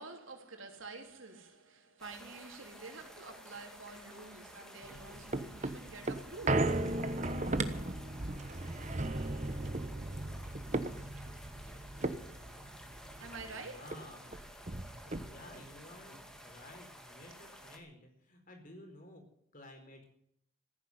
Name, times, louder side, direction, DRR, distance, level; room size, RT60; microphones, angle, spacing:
voice 1, 0.0-7.6 13.2-14.1 14.6-15.0, right 3 dB, 90° right, 3.4 m, -49 dB
sound 1, 2.0-17.8, equal, 5° left, 2.2 m, -53 dB
sound 2, 4.8-13.5 13.9-14.0 14.3-15.6 16.1-16.2, right 2 dB, 35° right, 1.1 m, -36 dB
voice 2, 13.5-14.5 15.2-19.2 19.5-20.1, left 1 dB, 45° left, 4.7 m, -53 dB
15.0 x 9.7 x 9.5 m
head